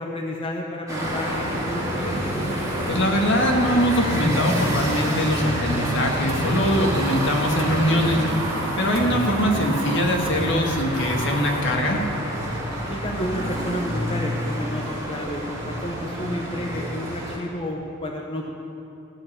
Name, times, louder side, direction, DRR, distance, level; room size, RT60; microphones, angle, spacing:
voice 1, 0.0-2.2 12.9-18.5, left 1 dB, 25° left, 0 dB, 0.9 m, -31 dB
sound 1, 0.9-17.4, equal, 15° right, 2.6 m, -28 dB
voice 2, 2.9-8.2 8.8-12.0, equal, 60° left, 1 dB, 1.5 m, -22 dB
sound 2, 6.3-11.6, right 1 dB, 65° right, 1.5 m, -32 dB
15.5 x 5.2 x 8.6 m, 3.0 s
head